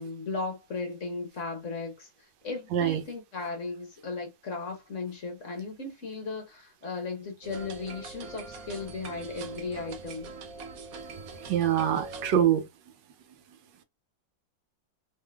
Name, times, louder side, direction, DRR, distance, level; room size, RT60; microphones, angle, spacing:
voice 1, 0.0-10.3, left 3 dB, 50° left, 1.2 m, -36 dB
voice 2, 2.7-3.0 11.4-12.7, right 9 dB, 80° right, 1.3 m, -24 dB
sound 1, 7.4-12.5, right 3 dB, 65° right, 0.9 m, -42 dB
3.6 x 3.3 x 2.2 m
omnidirectional pair, 2.0 m